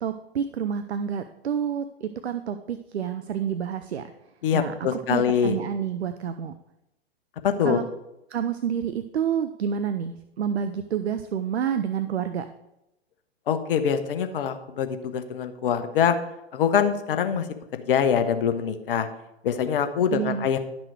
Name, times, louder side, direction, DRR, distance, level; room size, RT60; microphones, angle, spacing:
voice 1, 0.0-4.1 4.5-4.7 5.1-6.5 7.6-7.8 8.3-12.5 20.1-20.5, right 8 dB, 75° right, 10 dB, 0.7 m, -28 dB
voice 2, 4.4-5.6 7.4-7.8 13.5-16.2 16.5-17.5 17.7-19.1 19.4-20.6, left 8 dB, 55° left, 8 dB, 1.1 m, -24 dB
11.5 x 6.1 x 4.7 m, 0.88 s
figure-of-eight pair, 110°, 33 cm